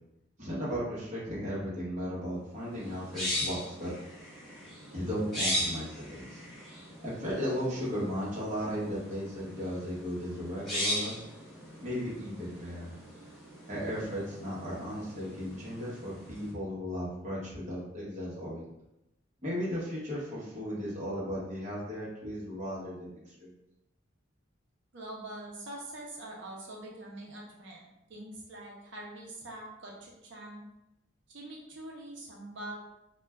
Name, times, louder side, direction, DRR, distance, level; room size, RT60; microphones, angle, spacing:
voice 1, 0.4-3.9 4.9-6.4 7.0-11.2 11.8-12.9 13.7-18.6 19.4-23.1 23.4-23.5, equal, 35° right, -8 dB, 0.9 m, -35 dB
sound 1, 2.7-16.5, left 1 dB, ahead, 0.8 m, -39 dB
voice 2, 24.9-30.6 31.3-32.8, right 1 dB, 65° right, -2 dB, 0.7 m, -44 dB
2.4 x 2.2 x 3.2 m, 0.88 s
head